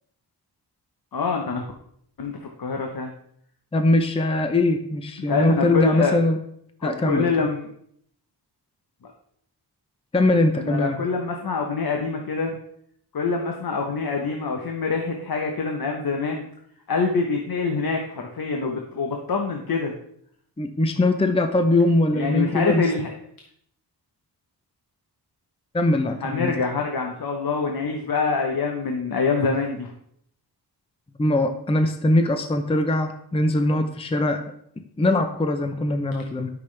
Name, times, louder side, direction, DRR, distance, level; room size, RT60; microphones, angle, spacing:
voice 1, 1.1-1.6 2.2-3.1 5.3-6.2 6.8-7.7 10.6-12.6 13.1-16.4 16.9-19.9 22.1-23.1 26.2-29.9, left 4 dB, 60° left, 2 dB, 1.0 m, -25 dB
voice 2, 3.7-6.4 6.8-7.5 10.1-11.0 20.6-22.8 25.7-26.5 31.2-34.4 35.0-36.5, left 1 dB, 15° left, 7 dB, 0.6 m, -21 dB
12.0 x 6.0 x 3.3 m, 0.69 s
wide cardioid pair, 150°, 41 cm